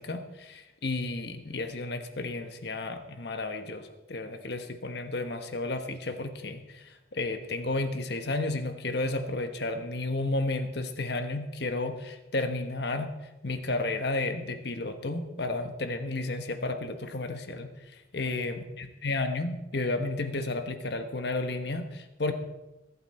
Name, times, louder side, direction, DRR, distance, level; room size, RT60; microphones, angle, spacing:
voice 1, 0.0-13.1 13.4-22.3, left 2 dB, 60° left, 7 dB, 1.2 m, -32 dB
23.0 x 8.4 x 4.3 m, 1.0 s
head